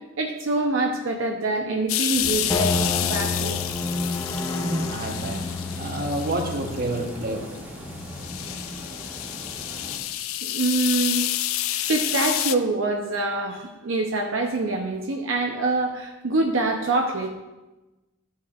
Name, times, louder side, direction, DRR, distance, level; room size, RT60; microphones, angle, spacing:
voice 1, 0.2-3.6 10.4-11.3 11.9-17.3, right 2 dB, 70° right, 2 dB, 0.7 m, -25 dB
sound 1, 1.9-7.1 7.6-7.7 8.1-12.6, left 13 dB, 80° left, 0.4 m, -29 dB
sound 2, 2.2-10.0, equal, 10° right, 1.5 m, -39 dB
sound 3, 2.5-9.0, left 2 dB, 15° left, 0.6 m, -31 dB
voice 2, 4.6-7.6, right 1 dB, 45° right, 4 dB, 1.0 m, -29 dB
12.5 x 7.4 x 2.4 m, 1.1 s
head